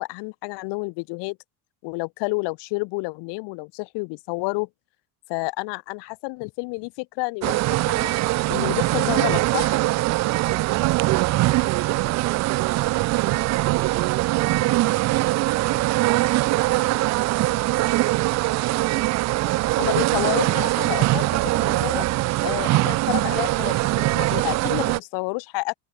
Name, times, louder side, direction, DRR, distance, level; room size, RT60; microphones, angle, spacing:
voice 1, 0.0-1.4 1.8-4.7 5.3-8.1 8.5-9.8 19.8-22.1 22.4-25.7, left 28 dB, 70° left, 4.6 m, -29 dB
sound 1, 7.4-25.0, right 18 dB, 40° right, 0.6 m, -22 dB
voice 2, 10.5-15.6 15.9-17.5 17.8-18.4, right 37 dB, 80° right, 3.8 m, -33 dB
cardioid pair, 170°, 43 cm